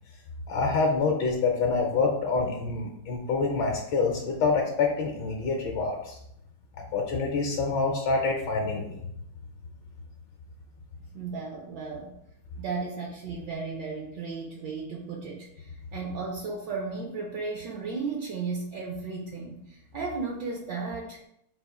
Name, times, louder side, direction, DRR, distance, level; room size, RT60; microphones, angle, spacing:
voice 1, 0.5-6.2 6.7-9.0, left 4 dB, 70° left, 1 dB, 1.3 m, -26 dB
voice 2, 11.1-12.1 12.6-19.6 19.9-21.2, right 4 dB, 70° right, 0 dB, 1.2 m, -34 dB
4.1 x 2.5 x 4.7 m, 0.77 s
omnidirectional pair, 2.2 m